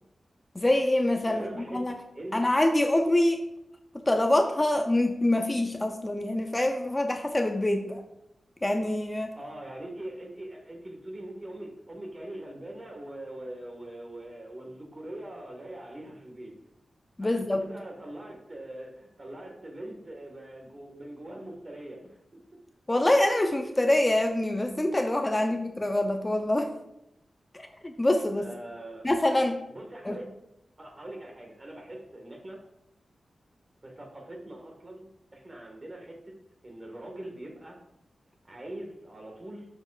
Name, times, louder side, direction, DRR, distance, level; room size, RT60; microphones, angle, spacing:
voice 1, 0.5-2.0 2.3-3.4 4.1-8.0 8.6-9.3 17.2-17.6 22.9-26.7 27.5-28.5 29.0-29.6 30.0-30.2, left 1 dB, 20° left, 5 dB, 0.5 m, -25 dB
voice 2, 1.2-1.9 2.1-2.4 9.3-16.5 17.2-17.3 17.6-22.4 28.3-29.1 29.7-30.2 30.8-32.6 33.8-36.3 36.6-37.8 38.4-39.7, right 1 dB, 35° right, 1 dB, 1.5 m, -42 dB
6.9 x 6.4 x 2.4 m, 0.83 s
wide cardioid pair, 80°, 0 cm